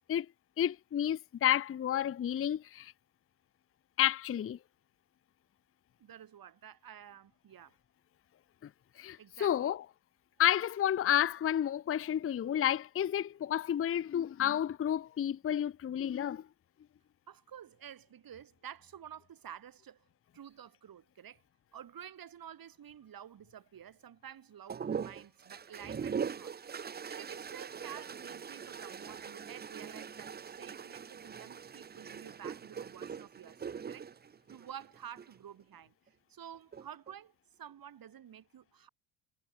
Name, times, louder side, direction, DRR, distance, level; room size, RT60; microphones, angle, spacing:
voice 1, 0.6-2.9 4.0-4.6 9.0-9.8 10.4-16.4, left 10 dB, 30° left, 0.7 m, -31 dB
voice 2, 6.0-7.8 9.2-9.7 17.3-20.0 20.3-21.4 21.7-34.1 34.5-37.3 37.6-38.9, right 9 dB, 45° right, 3.3 m, -51 dB
sound 1, 24.7-35.4 36.5-37.1, right 7 dB, 20° right, 0.7 m, -42 dB
supercardioid pair, 80°, 49 cm